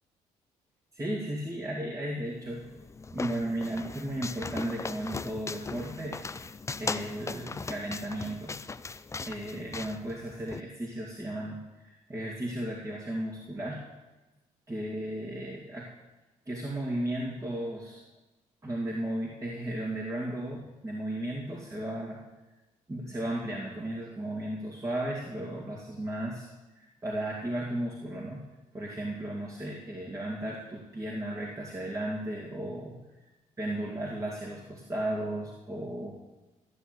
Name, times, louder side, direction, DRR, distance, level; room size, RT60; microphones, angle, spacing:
voice 1, 0.9-2.7 3.1-6.2 6.8-8.6 9.3-13.8 14.7-15.9 16.5-18.0 18.6-22.2 22.9-26.5 26.7-28.4 28.7-33.0 33.6-36.1, right 1 dB, 25° right, -3 dB, 2.3 m, -35 dB
sound 1, 2.4-10.6, left 4 dB, 20° left, 0.5 m, -39 dB
13.5 x 7.2 x 8.0 m, 1.1 s
supercardioid pair, 70°, 14 cm